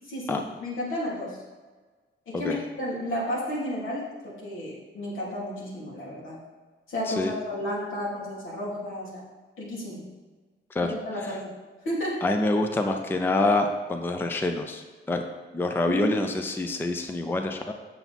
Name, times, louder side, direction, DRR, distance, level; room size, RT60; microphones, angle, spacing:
voice 1, 0.1-1.4 2.3-6.4 6.9-9.2 9.6-10.0 10.8-11.6 11.8-12.2 15.9-16.2, left 1 dB, 80° left, -5 dB, 2.8 m, -32 dB
voice 2, 12.2-15.2 15.5-17.7, left 2 dB, 10° left, 5 dB, 0.4 m, -26 dB
7.7 x 6.9 x 4.1 m, 1.3 s
wide cardioid pair, 180°, 20 cm